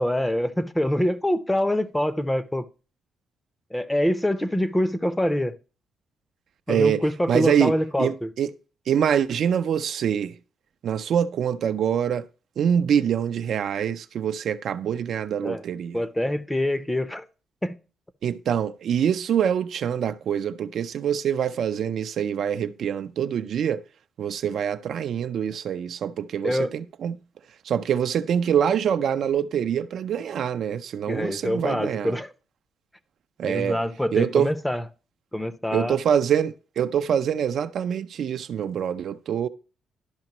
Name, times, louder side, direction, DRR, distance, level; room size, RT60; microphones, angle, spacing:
voice 1, 0.0-2.7 3.7-5.5 6.7-8.3 15.4-15.6 15.9-17.2 17.6-17.8 26.4-26.7 31.1-32.3 33.4-34.8 35.3-36.0, left 1 dB, 10° left, 0.7 m, -25 dB
voice 2, 6.7-7.0 7.3-8.5 8.9-10.3 10.8-12.2 12.6-16.0 18.2-23.8 24.2-27.1 27.7-32.1 33.4-33.8 34.1-34.5 35.7-39.5, right 8 dB, 65° right, 0.5 m, -25 dB
12.0 x 5.1 x 2.9 m
cardioid pair, 90°, 0 cm